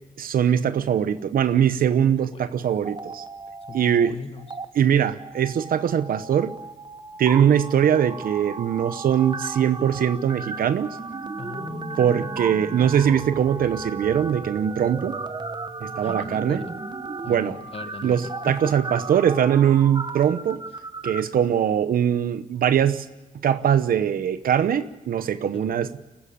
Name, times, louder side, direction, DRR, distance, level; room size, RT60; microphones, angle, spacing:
voice 1, 0.2-3.2 3.7-4.2 4.7-6.5 7.2-11.0 12.0-15.2 15.8-16.6 17.3-17.6 18.0-20.6 21.0-23.1 23.4-25.9, right 9 dB, 80° right, 12 dB, 0.9 m, -21 dB
sound 1, 2.7-4.1 4.4-4.6 5.2-21.2, right 3 dB, 30° right, 1.3 m, -35 dB
voice 2, 3.7-4.5 11.4-12.3 16.0-16.7 17.2-18.3 25.5-25.9, left 4 dB, 40° left, 9 dB, 1.4 m, -39 dB
23.5 x 14.5 x 8.7 m, 1.1 s
cardioid pair, 80°, 15 cm